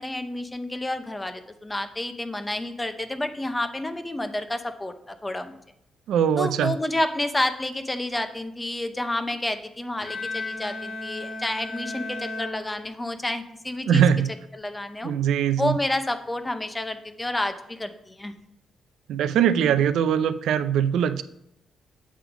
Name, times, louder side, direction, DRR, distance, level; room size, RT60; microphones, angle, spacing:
voice 1, 0.0-5.5 6.4-14.0 14.5-15.1 15.6-18.3, left 1 dB, 10° left, 9 dB, 0.6 m, -29 dB
voice 2, 6.1-6.8 13.9-14.3 15.0-15.8 19.1-21.2, right 8 dB, 90° right, 12 dB, 0.4 m, -21 dB
Bowed string instrument, 10.0-13.3, left 2 dB, 80° left, 2.3 m, -35 dB
8.6 x 3.7 x 5.9 m, 0.79 s
cardioid pair, 140°, 0 cm